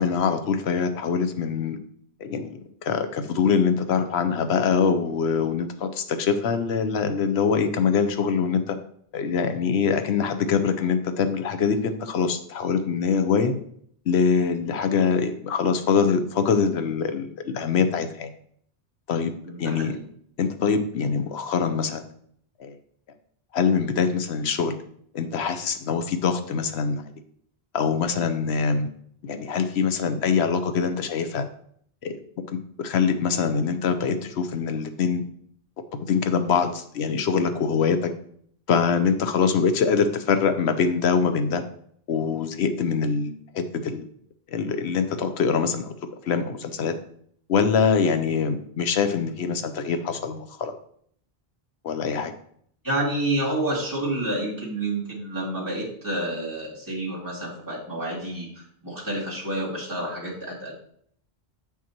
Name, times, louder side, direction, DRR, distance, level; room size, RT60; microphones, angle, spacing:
voice 1, 0.0-1.8 2.2-8.8 9.1-13.6 14.1-18.3 19.1-19.3 19.6-19.9 20.4-22.0 22.6-22.8 23.5-24.8 25.1-27.0 27.7-28.9 29.2-31.4 32.0-32.2 32.8-35.3 36.1-38.1 38.7-41.6 42.1-44.0 44.5-45.9 46.3-46.9 47.5-50.7 51.8-52.3, left 6 dB, 85° left, 9 dB, 1.0 m, -24 dB
voice 2, 19.5-20.0 52.8-60.7, right 1 dB, 20° right, -6 dB, 2.5 m, -29 dB
7.5 x 5.9 x 2.9 m, 0.64 s
omnidirectional pair, 1.1 m